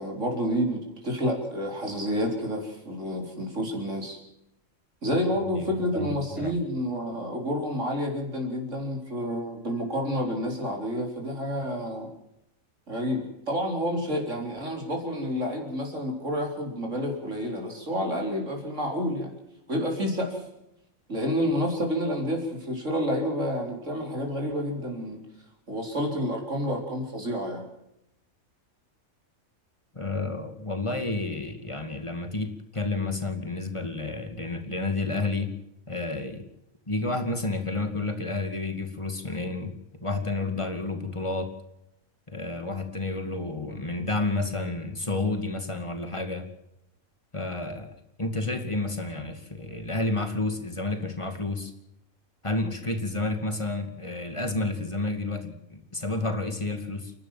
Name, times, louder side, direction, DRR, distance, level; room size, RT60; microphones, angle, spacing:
voice 1, 0.0-4.2 5.0-12.1 12.9-19.3 19.7-20.4 21.1-25.2 25.7-27.6, equal, 65° right, 1 dB, 4.5 m, -29 dB
voice 2, 5.5-6.6 29.9-35.5 35.9-36.4 36.9-41.5 42.3-46.5 47.3-47.9 48.2-51.7 52.4-57.1, left 2 dB, 20° left, 7 dB, 2.4 m, -30 dB
29.5 x 12.0 x 7.5 m, 0.84 s
omnidirectional pair, 1.4 m